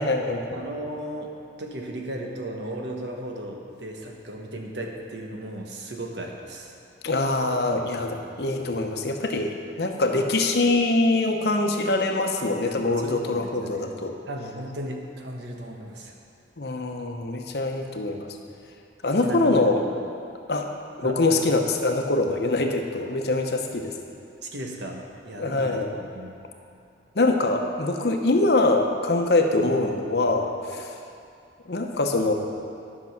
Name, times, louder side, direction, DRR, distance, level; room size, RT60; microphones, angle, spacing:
voice 1, 0.0-0.6 7.0-14.1 16.6-18.3 19.0-19.8 20.5-20.7 21.0-23.9 25.4-26.0 27.1-30.9 31.7-32.3, left 2 dB, 65° left, 3 dB, 0.9 m, -24 dB
voice 2, 0.5-1.3 1.6-6.7 8.2-8.3 13.0-14.0 14.3-16.1 19.2-19.6 21.0-21.5 24.4-26.4, right 1 dB, 80° right, 1 dB, 1.2 m, -36 dB
11.0 x 6.0 x 5.9 m, 2.5 s
head